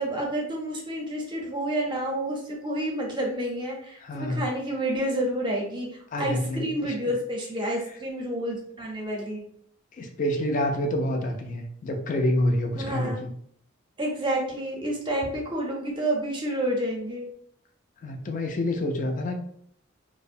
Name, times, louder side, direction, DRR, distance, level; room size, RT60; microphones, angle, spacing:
voice 1, 0.0-9.5 12.8-13.1 14.0-17.3, right 1 dB, 25° right, -1 dB, 0.6 m, -29 dB
voice 2, 4.0-4.4 6.1-6.9 10.0-13.3 18.0-19.4, left 1 dB, 40° left, 5 dB, 0.4 m, -27 dB
2.6 x 2.0 x 2.5 m, 0.64 s
head